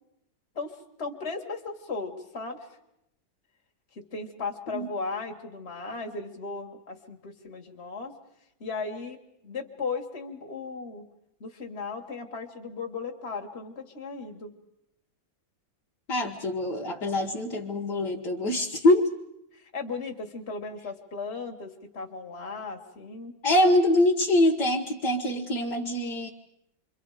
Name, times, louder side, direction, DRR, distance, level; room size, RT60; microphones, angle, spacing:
voice 1, 0.6-2.6 4.1-8.1 8.6-9.2 9.4-11.0 11.4-14.5 19.5-23.3, left 4 dB, 35° left, 2 dB, 2.0 m, -36 dB
voice 2, 16.1-19.1 23.4-26.3, left 1 dB, 60° left, 0 dB, 1.9 m, -24 dB
28.0 x 24.0 x 5.0 m, 0.82 s
omnidirectional pair, 2.2 m